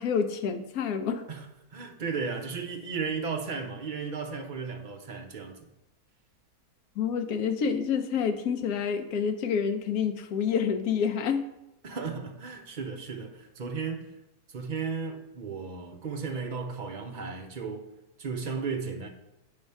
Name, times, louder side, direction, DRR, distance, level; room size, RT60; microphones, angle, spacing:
voice 1, 0.0-1.2 7.0-11.4, left 7 dB, 70° left, 1.1 m, -28 dB
voice 2, 1.3-5.6 11.8-14.1 14.5-17.9 18.2-19.1, right 5 dB, 50° right, 0.6 m, -35 dB
8.5 x 3.5 x 5.4 m
omnidirectional pair, 1.6 m